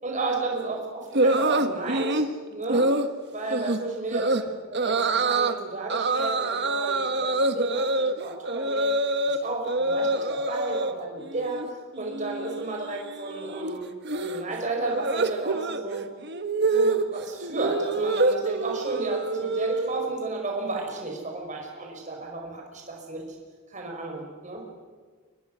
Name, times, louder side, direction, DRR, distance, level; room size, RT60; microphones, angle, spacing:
voice 1, 0.0-2.2 2.5-2.9 3.3-8.9 9.2-16.0 16.7-23.2 23.7-24.6, right 3 dB, 35° right, 0 dB, 5.1 m, -33 dB
sound 1, 1.1-2.3 2.7-3.1 3.5-3.8 4.1-4.4 4.7-5.5 5.9-9.4 9.6-10.9 11.3-11.7 11.9-20.1, right 2 dB, 50° right, 1.4 m, -26 dB
28.5 x 24.0 x 6.3 m, 1.5 s
head